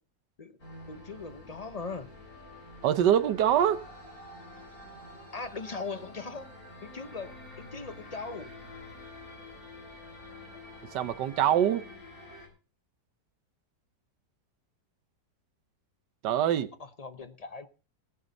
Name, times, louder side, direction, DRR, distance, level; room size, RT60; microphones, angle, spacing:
sound 1, 0.6-12.5, left 1 dB, 60° left, 4.9 m, -48 dB
voice 1, 0.9-2.1 5.3-6.5 6.8-8.5 16.8-17.7, left 4 dB, 35° left, 0.6 m, -39 dB
voice 2, 2.8-3.8 10.9-11.9 16.2-16.7, right 10 dB, 90° right, 1.5 m, -24 dB
18.5 x 9.6 x 4.0 m
omnidirectional pair, 1.8 m